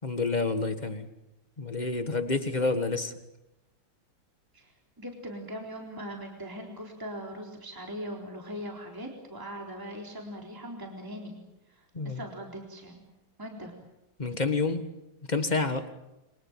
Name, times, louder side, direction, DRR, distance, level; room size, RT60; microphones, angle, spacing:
voice 1, 0.0-1.1 1.6-3.1 11.9-12.2 14.2-14.9 15.3-15.9, left 3 dB, 25° left, 9 dB, 1.6 m, -29 dB
voice 2, 5.0-11.4 11.7-13.0 13.4-13.7, equal, 10° right, 0 dB, 3.8 m, -40 dB
29.5 x 24.0 x 7.4 m, 0.93 s
omnidirectional pair, 2.2 m